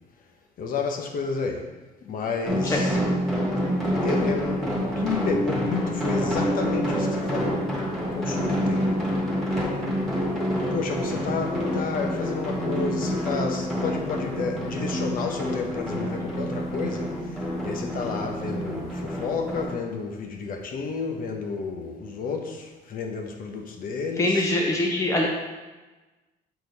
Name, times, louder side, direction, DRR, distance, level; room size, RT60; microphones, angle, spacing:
voice 1, 0.6-1.7 2.0-3.0 4.0-7.7 8.0-8.9 10.7-24.5, left 5 dB, 55° left, 3 dB, 1.0 m, -31 dB
sound 1, 2.4-19.7, equal, ahead, 1.9 m, -27 dB
voice 2, 24.2-25.3, left 1 dB, 20° left, -1 dB, 0.9 m, -23 dB
6.8 x 4.0 x 4.0 m, 1.2 s
cardioid pair, 110°, 17 cm